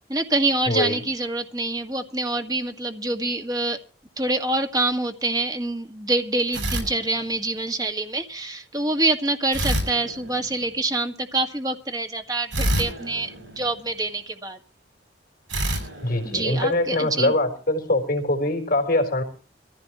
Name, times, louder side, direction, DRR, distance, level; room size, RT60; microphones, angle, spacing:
voice 1, 0.1-3.8 4.2-14.6 16.3-17.3, right 2 dB, 20° right, 5 dB, 1.8 m, -26 dB
voice 2, 0.7-1.0 16.0-19.2, left 1 dB, 50° left, 3 dB, 3.9 m, -23 dB
sound 1, 6.5-7.7 9.5-10.9 12.5-14.2 15.5-17.1, equal, 90° right, 8.0 m, -29 dB
24.0 x 15.0 x 3.0 m, 0.36 s
head